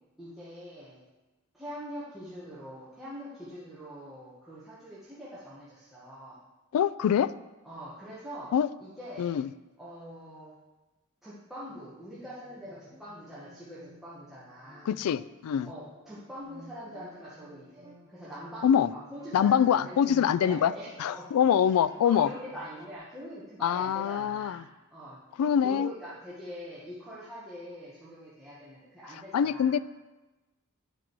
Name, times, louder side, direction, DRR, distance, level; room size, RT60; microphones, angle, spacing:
voice 1, 0.2-1.0 1.5-6.4 7.6-8.5 8.8-9.3 9.8-10.5 11.2-14.9 15.6-21.3 22.0-25.2 25.6-29.7, equal, ahead, -10 dB, 1.5 m, -43 dB
voice 2, 6.7-7.3 8.5-8.7 9.2-9.5 14.9-15.7 18.6-18.9 19.3-20.7 21.0-22.3 23.6-24.6 25.4-25.9 29.3-29.8, left 8 dB, 90° left, 17 dB, 0.3 m, -24 dB
sound 1, 11.7-22.9, right 1 dB, 20° right, 0.8 m, -54 dB
9.8 x 6.1 x 4.6 m, 1.1 s
head